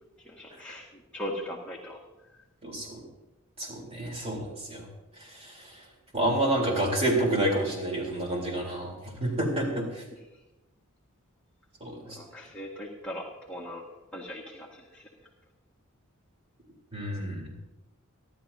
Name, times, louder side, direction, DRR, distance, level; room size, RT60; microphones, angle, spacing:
voice 1, 0.3-0.8 1.1-2.0 12.1-13.2 13.5-13.8 14.1-15.0, equal, 5° left, -4 dB, 1.8 m, -39 dB
voice 2, 2.6-3.0 3.6-4.9 5.2-5.8 6.1-8.9 9.2-10.0 11.8-12.2 16.9-17.5, right 1 dB, 30° right, -1 dB, 3.7 m, -29 dB
29.5 x 11.5 x 2.8 m, 1.0 s
head